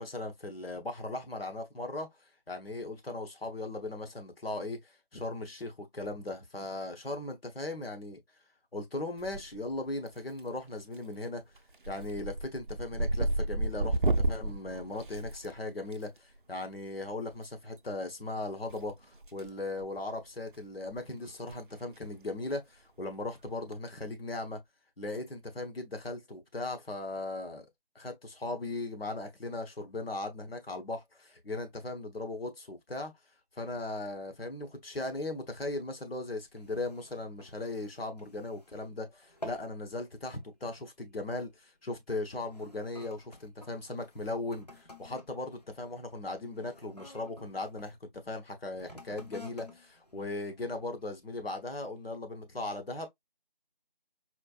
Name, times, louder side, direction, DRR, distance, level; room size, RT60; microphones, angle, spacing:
voice 1, 0.0-2.1 2.5-8.2 8.7-11.4 11.9-14.0 14.3-24.6 25.0-27.7 27.9-33.1 33.6-53.1, left 2 dB, 85° left, 1.0 m, -38 dB
sound 1, 9.2-9.8 10.1-10.6 10.9-11.2 11.6-16.0 17.3-17.5 18.7-19.5 19.8-20.0 20.5-20.6 20.9-21.0 21.3-21.5 21.8-21.9 23.5-23.7, right 2 dB, 60° right, 0.4 m, -32 dB
sound 2, 36.4-39.0 39.2-39.8 40.2-40.5 41.2-41.4 42.1-48.0 48.7-51.1 51.7-51.8, left 1 dB, 45° left, 0.6 m, -52 dB
4.3 x 2.4 x 2.3 m
figure-of-eight pair, 175°, 29 cm